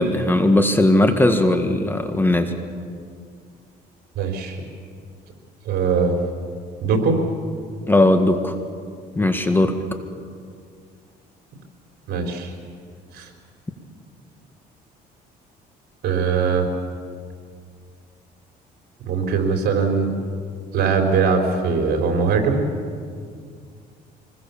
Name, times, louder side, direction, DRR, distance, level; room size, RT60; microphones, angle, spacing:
voice 1, 0.0-2.5 7.9-8.5 9.1-9.7, left 1 dB, 10° left, 7 dB, 1.7 m, -18 dB
voice 2, 4.2-4.6 5.6-6.2 6.8-7.2 12.1-12.5 13.1-13.3 16.0-16.7 19.1-20.1 20.7-22.6, right 5 dB, 70° right, 3 dB, 4.2 m, -21 dB
25.0 x 20.5 x 7.2 m, 2.2 s
cardioid pair, 110°, 17 cm